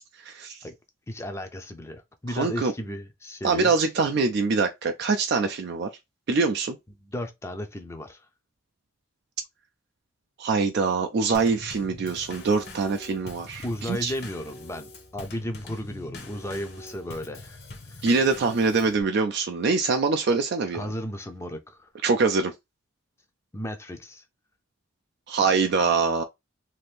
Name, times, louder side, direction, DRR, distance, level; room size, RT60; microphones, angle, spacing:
voice 1, 0.2-0.6 2.3-2.7 3.4-5.9 6.3-6.8 10.4-14.1 18.0-20.9 22.0-22.5 25.3-26.2, right 4 dB, 55° right, 0.4 m, -24 dB
voice 2, 1.1-3.7 7.0-8.3 13.6-18.0 20.7-21.9 23.5-24.2, left 1 dB, 15° left, 0.5 m, -35 dB
Drum kit / Snare drum / Bass drum, 11.3-19.0, left 2 dB, 50° left, 0.8 m, -43 dB
2.7 x 2.6 x 3.3 m
head